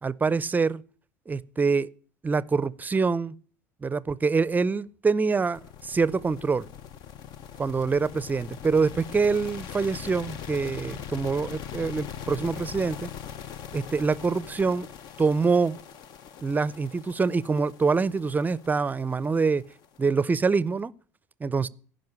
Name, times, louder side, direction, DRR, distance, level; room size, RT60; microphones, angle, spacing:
voice 1, 0.0-0.8 1.3-1.9 2.2-3.3 3.8-6.6 7.6-13.1 13.7-14.9 15.2-15.8 16.4-19.7 20.0-20.9 21.4-21.7, right 4 dB, 20° right, 0.6 m, -25 dB
sound 1, 5.5-20.7, left 9 dB, 50° left, 0.8 m, -41 dB
16.5 x 5.4 x 8.7 m
hypercardioid pair, 70°, 9 cm